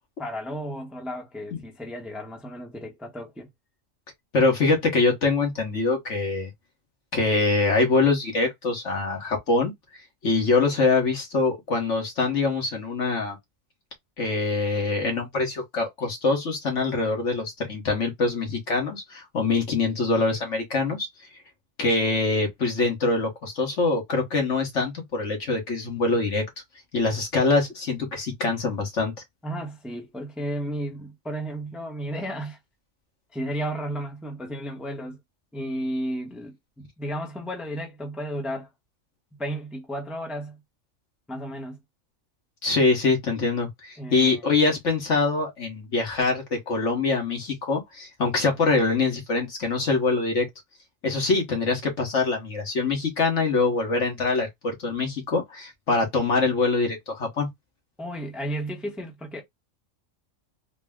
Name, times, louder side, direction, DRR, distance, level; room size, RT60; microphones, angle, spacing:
voice 1, 0.2-3.5 29.4-32.6 33.3-35.2 35.5-38.7 39.4-40.6 41.3-41.8 44.0-44.4 58.0-59.4, equal, ahead, 0.8 m, -33 dB
voice 2, 4.3-6.5 7.1-9.7 10.2-13.4 14.2-21.1 21.8-26.4 26.9-29.1 42.6-50.5 51.0-57.5, left 3 dB, 70° left, 1.7 m, -24 dB
4.0 x 2.2 x 3.5 m
omnidirectional pair, 1.3 m